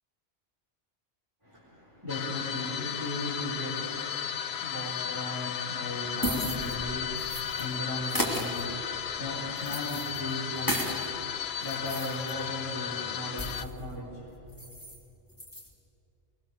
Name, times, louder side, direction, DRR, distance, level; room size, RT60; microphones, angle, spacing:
voice 1, 1.4-14.4, left 1 dB, 20° right, -9 dB, 4.6 m, -37 dB
sound 1, 2.1-13.6, left 9 dB, 70° left, 0.9 m, -35 dB
sound 2, 5.9-7.7 8.0-11.1 11.5-13.8 14.1-14.2 14.5-15.0 15.3-15.7, left 1 dB, 15° left, 2.8 m, -35 dB
22.5 x 22.0 x 6.9 m, 2.8 s
omnidirectional pair, 1.2 m